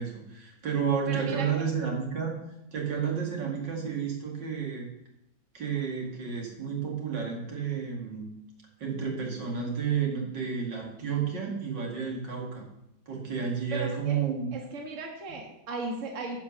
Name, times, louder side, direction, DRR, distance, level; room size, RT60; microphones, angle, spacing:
voice 1, 0.0-2.4 2.7-4.9 5.5-8.3 8.8-12.7 13.1-14.5, right 6 dB, 70° right, 0 dB, 2.9 m, -31 dB
voice 2, 1.1-1.5 13.7-14.2 14.5-16.4, right 3 dB, 45° right, 1 dB, 1.7 m, -36 dB
10.5 x 6.0 x 6.8 m, 0.84 s
omnidirectional pair, 2.0 m